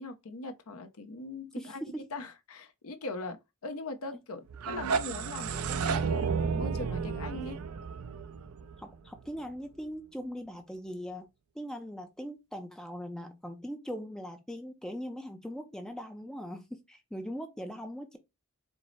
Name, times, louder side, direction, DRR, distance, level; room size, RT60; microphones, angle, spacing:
voice 1, 0.0-1.8 2.1-3.4 3.6-7.6, left 2 dB, 75° left, 0.7 m, -40 dB
voice 2, 1.6-2.0 8.8-11.3 11.5-18.2, equal, 5° left, 0.4 m, -40 dB
sound 1, 4.5-9.4, right 5 dB, 75° right, 0.4 m, -32 dB
4.6 x 2.0 x 3.8 m
head